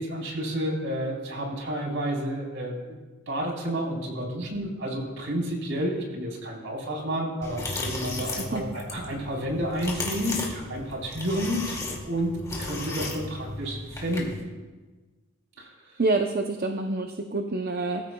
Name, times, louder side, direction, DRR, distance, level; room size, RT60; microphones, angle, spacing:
voice 1, 0.0-14.4 15.6-15.9, equal, 65° right, -1 dB, 3.9 m, -31 dB
sound 1, 7.4-14.4, left 2 dB, 15° left, 2.3 m, -35 dB
voice 2, 8.3-8.6 16.0-18.1, right 2 dB, 45° right, 4 dB, 0.7 m, -27 dB
22.0 x 14.5 x 2.3 m, 1.3 s
head